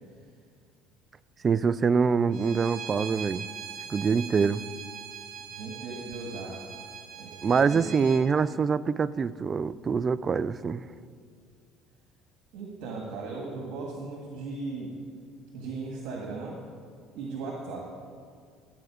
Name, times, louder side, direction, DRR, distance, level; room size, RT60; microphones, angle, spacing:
voice 1, 1.4-3.5 3.9-4.6 7.4-10.9, right 5 dB, 30° right, 0.3 m, -25 dB
Bowed string instrument, 2.3-8.2, right 7 dB, 60° right, 1.3 m, -41 dB
voice 2, 5.5-6.7 7.2-7.9 12.5-14.9 15.5-16.6 17.1-17.9, right 3 dB, 75° right, 1.7 m, -37 dB
13.5 x 7.7 x 4.9 m
cardioid pair, 115°, 0 cm